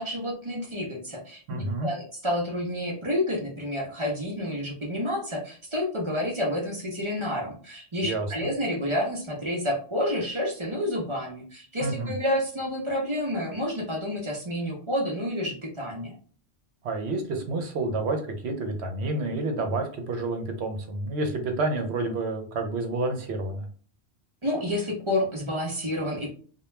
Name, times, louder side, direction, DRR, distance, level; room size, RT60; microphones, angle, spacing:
voice 1, 0.0-1.4 1.8-16.1 24.4-26.3, left 1 dB, 30° right, -2 dB, 0.6 m, -29 dB
voice 2, 1.5-1.9 8.0-8.5 11.8-12.1 16.8-23.7, right 2 dB, 75° right, 4 dB, 0.9 m, -29 dB
2.3 x 2.2 x 3.0 m, 0.43 s
omnidirectional pair, 1.1 m